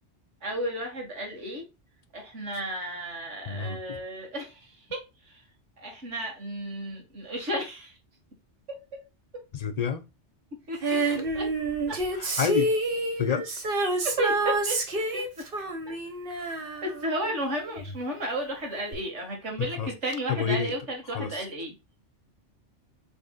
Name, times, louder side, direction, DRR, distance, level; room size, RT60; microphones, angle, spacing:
voice 1, 0.4-1.7 2.1-5.4 5.8-7.9 8.7-9.0 10.7-11.5 11.9-12.0 14.0-14.8 15.1-15.2 16.8-21.7, right 1 dB, 80° right, 2.2 m, -33 dB
voice 2, 3.5-4.0 9.5-10.0 12.1-12.7 13.2-13.5 17.9-18.0 19.6-19.9 20.3-20.7 21.0-21.5, left 7 dB, 50° left, 0.5 m, -29 dB
Female singing, 10.8-17.8 18.9-19.0, right 2 dB, 50° right, 1.1 m, -28 dB
5.2 x 3.5 x 2.3 m
omnidirectional pair, 1.2 m